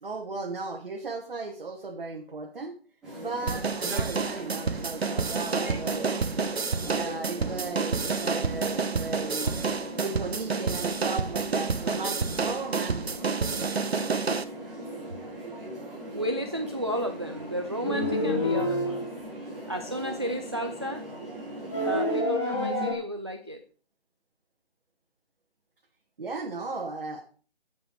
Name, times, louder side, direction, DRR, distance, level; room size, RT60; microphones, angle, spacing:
voice 1, 0.0-2.7 3.1-6.1 6.9-9.5 10.0-13.2 26.2-27.2, right 3 dB, 55° right, 0 dB, 1.5 m, -36 dB
sound 1, 3.0-22.2, right 1 dB, ahead, 0.9 m, -40 dB
sound 2, 3.5-14.4, right 4 dB, 75° right, 0.9 m, -29 dB
voice 2, 16.1-19.1 19.7-21.0 21.8-23.6, equal, 25° right, 5 dB, 0.4 m, -33 dB
sound 3, 17.8-19.1 21.7-22.9, left 1 dB, 25° left, 1.9 m, -27 dB
8.1 x 7.4 x 4.6 m, 0.39 s
figure-of-eight pair, 155°, 32 cm